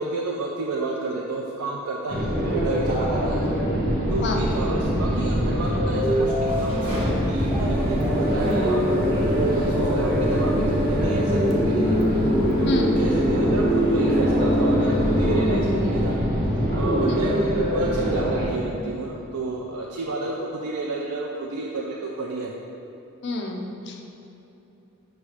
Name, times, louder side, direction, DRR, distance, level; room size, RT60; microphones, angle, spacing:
voice 1, 0.0-3.5 4.1-8.8 9.2-12.0 12.6-16.1 16.8-22.5, right 3 dB, 85° right, -1 dB, 0.4 m, -30 dB
sound 1, 2.1-18.4, equal, 45° right, 1.1 m, -23 dB
sound 2, 6.1-16.4, right 1 dB, 25° right, 1.4 m, -30 dB
sound 3, 7.5-15.5, left 1 dB, ahead, 0.6 m, -27 dB
voice 2, 12.7-13.0 17.0-17.4 23.2-24.0, left 2 dB, 55° left, 2 dB, 0.6 m, -29 dB
6.2 x 3.1 x 4.8 m, 3.0 s
head